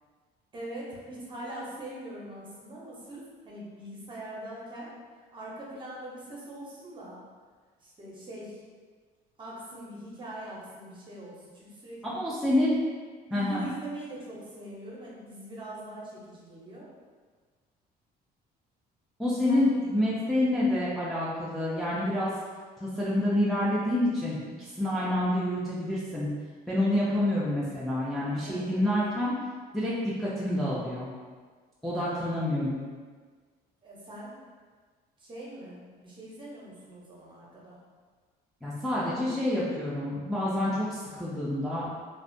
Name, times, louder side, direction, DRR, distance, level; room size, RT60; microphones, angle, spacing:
voice 1, 0.5-4.9 5.3-7.2 7.8-8.6 9.4-12.1 13.3-16.9 19.5-20.0 26.8-27.1 28.4-28.9 31.9-32.4 33.8-34.4 35.2-37.8, right 1 dB, 30° right, -5 dB, 0.7 m, -42 dB
voice 2, 12.0-12.7 13.3-13.7 19.2-22.3 22.8-26.3 26.7-29.3 29.7-31.1 31.8-32.8 38.6-41.9, left 1 dB, ahead, -9 dB, 0.4 m, -28 dB
2.4 x 2.1 x 2.5 m, 1.5 s
cardioid pair, 110°, 17 cm